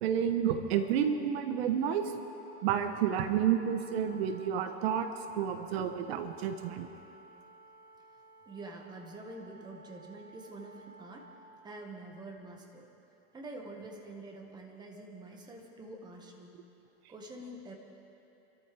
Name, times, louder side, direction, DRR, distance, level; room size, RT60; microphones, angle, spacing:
voice 1, 0.0-2.1 2.6-5.1 5.3-6.9, right 8 dB, 70° right, 8 dB, 1.1 m, -30 dB
Wind instrument woodwind instrument, 2.3-11.4, right 2 dB, 15° left, 1.7 m, -54 dB
voice 2, 8.4-11.3 11.6-12.9 13.3-16.6 17.1-17.7, right 2 dB, 15° right, 1 dB, 1.6 m, -46 dB
28.0 x 13.5 x 3.5 m, 3.0 s
supercardioid pair, 145°, 32 cm